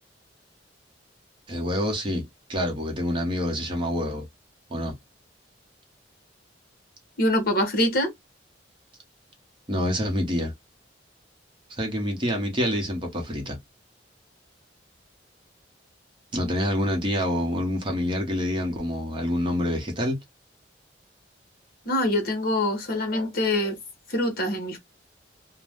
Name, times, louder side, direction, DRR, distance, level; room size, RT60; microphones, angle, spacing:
voice 1, 1.5-4.3 4.7-4.9 9.7-10.5 11.7-13.6 16.3-20.2, equal, 25° right, 0.8 m, -27 dB
voice 2, 7.2-8.1 21.9-23.8 24.1-24.8, left 1 dB, 55° left, 1.1 m, -24 dB
2.5 x 2.1 x 3.3 m
head